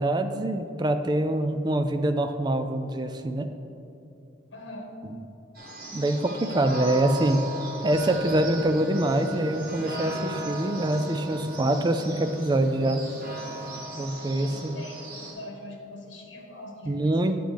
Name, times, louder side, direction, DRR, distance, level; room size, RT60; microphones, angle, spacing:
voice 1, 0.0-3.5 5.9-7.4 7.8-13.0 13.9-14.8 16.9-17.4, right 1 dB, 20° right, 8 dB, 0.4 m, -25 dB
voice 2, 4.5-4.9 14.2-17.4, left 1 dB, 70° left, 0 dB, 1.5 m, -43 dB
sound 1, 5.5-15.3, right 1 dB, 50° right, 1.7 m, -38 dB
sound 2, 7.9-13.9, right 4 dB, 70° right, 0.6 m, -38 dB
9.3 x 7.6 x 3.4 m, 2.8 s
head